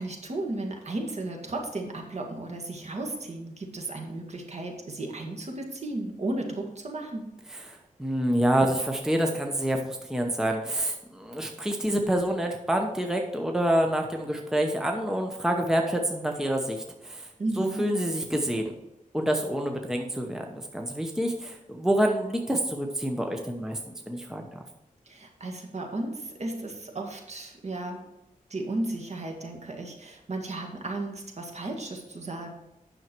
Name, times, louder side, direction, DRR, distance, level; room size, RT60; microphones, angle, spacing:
voice 1, 0.0-7.3 17.4-17.8 25.1-28.0 28.5-32.5, right 2 dB, 50° right, 2 dB, 1.9 m, -34 dB
voice 2, 7.7-17.3 17.6-18.7 19.1-24.5, right 1 dB, 5° right, 2 dB, 0.9 m, -27 dB
9.4 x 6.4 x 4.5 m, 0.97 s
wide cardioid pair, 120°, 14 cm